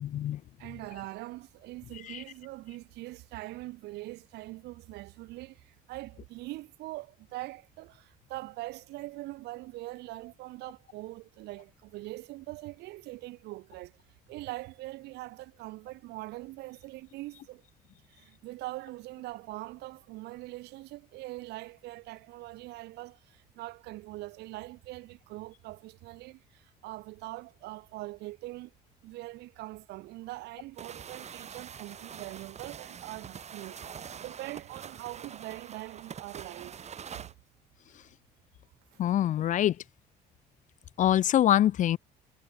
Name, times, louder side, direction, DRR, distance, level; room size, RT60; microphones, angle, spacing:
voice 1, 0.0-0.4 2.1-2.2 39.0-39.7 41.0-42.0, left 12 dB, 50° left, 0.5 m, -24 dB
voice 2, 0.6-13.9 14.3-17.6 18.1-28.7 29.0-36.9 38.9-39.0, right 19 dB, 85° right, 1.1 m, -42 dB
sound 1, 30.8-37.3, right 7 dB, 40° right, 3.7 m, -45 dB
cardioid pair, 110°, 17 cm